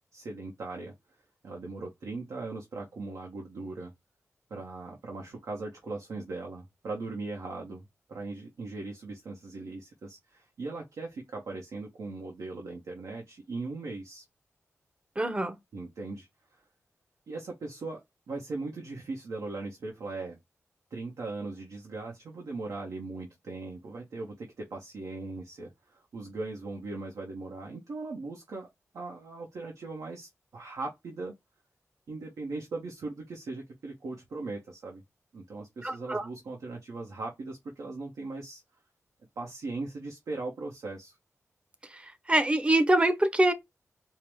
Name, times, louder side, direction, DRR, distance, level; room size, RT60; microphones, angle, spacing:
voice 1, 0.1-0.9 1.4-3.9 4.5-14.2 15.7-16.3 17.3-20.4 20.9-28.7 28.9-31.3 32.1-35.0 35.3-38.6 39.4-41.2, right 3 dB, 85° right, 0.9 m, -39 dB
voice 2, 15.2-15.6 35.8-36.2 42.3-43.5, right 1 dB, 20° right, 0.7 m, -24 dB
4.6 x 2.1 x 3.4 m
wide cardioid pair, 85°, 5 cm